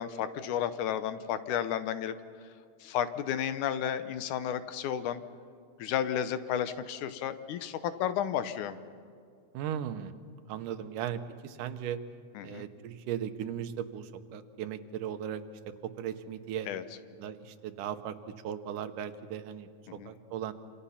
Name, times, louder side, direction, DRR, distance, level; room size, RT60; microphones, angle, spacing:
voice 1, 0.0-2.2 2.8-5.2 5.8-8.8 12.4-12.7 16.7-16.8 19.9-20.1, left 9 dB, 80° left, 11 dB, 2.3 m, -32 dB
voice 2, 9.5-10.1 10.5-12.0 12.4-15.4 15.8-16.7 17.1-18.2 18.4-20.5, right 9 dB, 85° right, 10 dB, 2.6 m, -37 dB
27.0 x 26.5 x 5.8 m, 2.3 s
omnidirectional pair, 3.6 m